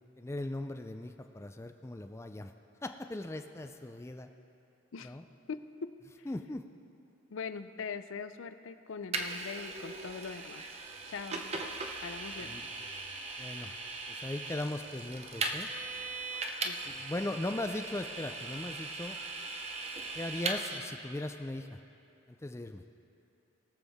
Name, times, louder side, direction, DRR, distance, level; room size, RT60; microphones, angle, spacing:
voice 1, 0.2-2.5 2.8-4.3 5.0-5.2 6.3-6.6 12.4-12.7 13.4-13.7 14.1-15.7 16.9-19.2 20.2-21.8 22.4-22.8, left 1 dB, 15° left, 7 dB, 0.3 m, -38 dB
voice 2, 5.5-5.9 6.2-6.3 7.3-10.6 11.1-11.7 12.0-12.5 16.6-16.8, left 5 dB, 75° left, 11 dB, 0.5 m, -42 dB
Vehicle, 9.1-20.8, right 3 dB, 30° right, 0.7 m, -39 dB
21.0 x 7.2 x 3.5 m, 2.7 s
head